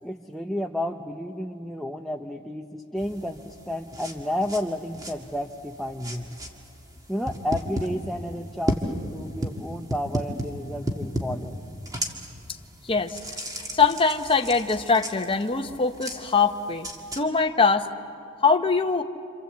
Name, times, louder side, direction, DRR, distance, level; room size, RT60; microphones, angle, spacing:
voice 1, 0.0-6.3 7.1-11.5, left 1 dB, ahead, 3 dB, 0.7 m, -31 dB
sound 1, 3.0-17.2, equal, 15° right, 1.9 m, -35 dB
voice 2, 12.8-13.2 13.7-16.9 17.1-17.9 18.4-19.0, left 5 dB, 25° left, 5 dB, 0.9 m, -22 dB
27.0 x 27.0 x 8.1 m, 2.5 s
head